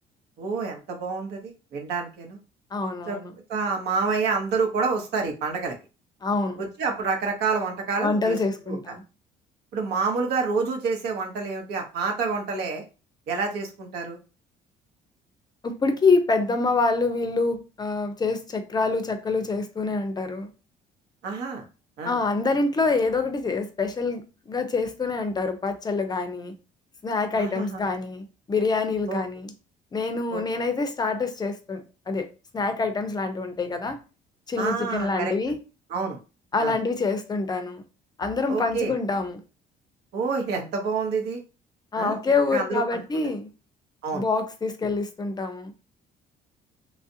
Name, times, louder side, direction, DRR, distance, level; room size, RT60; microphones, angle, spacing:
voice 1, 0.4-2.4 3.1-3.2 3.5-5.7 6.6-8.4 8.7-8.9 9.7-12.8 13.3-14.2 21.2-21.6 22.0-22.2 27.4-27.8 29.1-29.2 30.3-30.4 34.6-35.3 35.9-36.2 36.6-36.7 38.5-38.9 40.1-41.4 41.9-42.2 42.5-43.0 44.0-44.3, right 4 dB, 75° right, 0.9 m, -28 dB
voice 2, 2.7-3.3 6.2-6.6 8.0-9.0 15.6-20.5 22.0-26.5 27.0-29.5 29.9-32.3 32.5-34.0 34.5-35.6 36.5-37.8 38.2-39.4 41.9-43.5 44.1-45.7, left 3 dB, 25° left, 0.5 m, -26 dB
3.1 x 2.4 x 2.7 m
cardioid pair, 110°, 17 cm